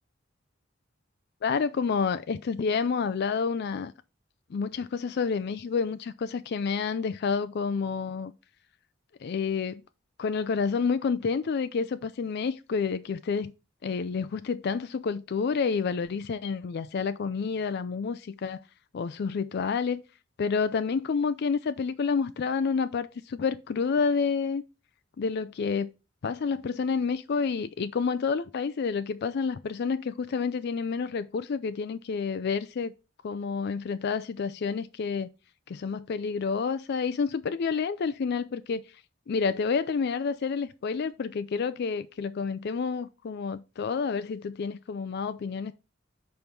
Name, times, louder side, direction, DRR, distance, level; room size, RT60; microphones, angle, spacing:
voice 1, 1.4-3.9 4.5-8.3 9.2-9.8 10.2-13.5 13.8-18.6 18.9-20.0 20.4-24.6 25.2-25.9 26.2-32.9 33.2-35.3 35.7-38.8 39.3-45.7, left 5 dB, 55° left, 0.4 m, -29 dB
5.2 x 4.6 x 5.7 m
head